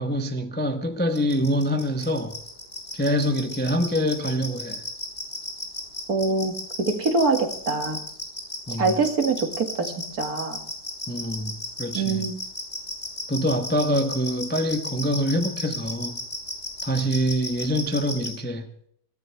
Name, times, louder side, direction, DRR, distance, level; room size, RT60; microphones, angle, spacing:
voice 1, 0.0-2.4 2.9-4.8 8.7-9.0 11.1-12.2 13.3-16.2 16.8-18.7, equal, 10° left, 0.7 m, -25 dB
sound 1, 1.2-18.3, left 1 dB, 30° left, 5.3 m, -33 dB
voice 2, 6.1-8.0 8.8-10.6 11.9-12.4, right 3 dB, 55° right, 2.4 m, -24 dB
21.0 x 17.0 x 3.3 m
omnidirectional pair, 2.0 m